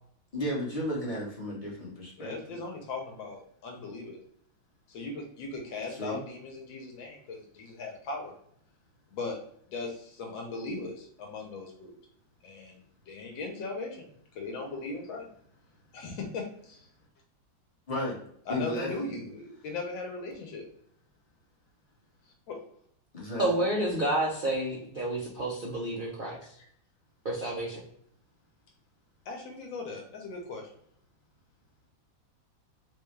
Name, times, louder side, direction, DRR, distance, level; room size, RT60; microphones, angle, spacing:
voice 1, 0.3-2.5 5.9-6.2 17.9-18.2 18.5-18.9 23.1-23.5, left 1 dB, 30° left, -5 dB, 0.8 m, -33 dB
voice 2, 2.2-4.2 4.9-8.3 9.1-9.4 9.7-11.9 12.4-15.3 15.9-16.9 18.5-20.7 22.5-22.6 26.6-26.7 29.3-30.8, left 3 dB, 75° left, 1 dB, 1.5 m, -38 dB
voice 3, 23.4-26.4 27.2-27.8, right 1 dB, 90° right, -4 dB, 0.4 m, -29 dB
4.1 x 2.3 x 3.1 m, 0.66 s
omnidirectional pair, 2.1 m